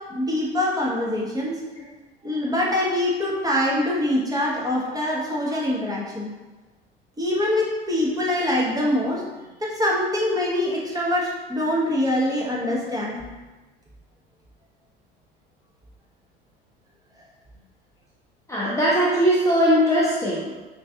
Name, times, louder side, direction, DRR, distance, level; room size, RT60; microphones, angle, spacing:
voice 1, 0.1-1.5 2.2-6.3 7.2-9.2 9.6-13.2, left 1 dB, 15° right, -5 dB, 0.9 m, -24 dB
voice 2, 12.4-12.8 18.5-20.6, equal, 10° left, -7 dB, 0.6 m, -21 dB
4.7 x 2.5 x 2.3 m, 1.2 s
figure-of-eight pair, 65°, 29 cm